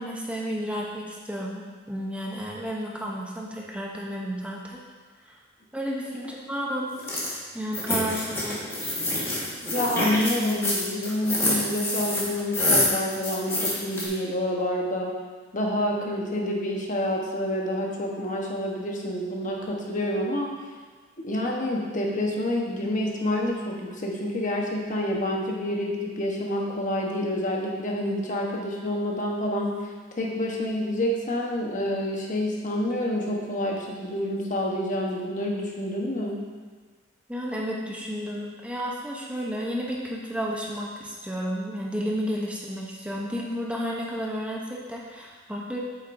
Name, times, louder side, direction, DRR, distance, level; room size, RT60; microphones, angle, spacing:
voice 1, 0.0-4.8 5.2-5.4 5.7-6.9 7.5-8.6 37.3-45.8, equal, 5° right, -3 dB, 0.7 m, -32 dB
sound 1, 7.0-7.3 7.7-14.0, left 1 dB, 15° left, 1.6 m, -26 dB
voice 2, 9.7-15.2 15.5-20.5 21.2-29.9 30.1-36.4, left 1 dB, 40° left, -1 dB, 1.1 m, -28 dB
8.5 x 8.2 x 2.6 m, 1.5 s
head